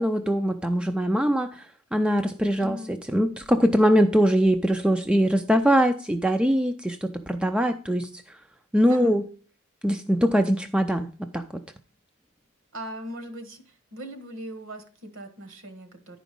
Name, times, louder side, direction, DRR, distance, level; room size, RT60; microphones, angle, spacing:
voice 1, 0.0-1.7 1.9-8.4 8.7-9.2 9.8-11.6, equal, 5° right, 6 dB, 0.4 m, -22 dB
voice 2, 2.6-2.9 8.9-9.1 12.7-13.6 13.9-16.2, equal, 60° right, 8 dB, 1.5 m, -39 dB
11.0 x 5.0 x 5.2 m, 0.40 s
head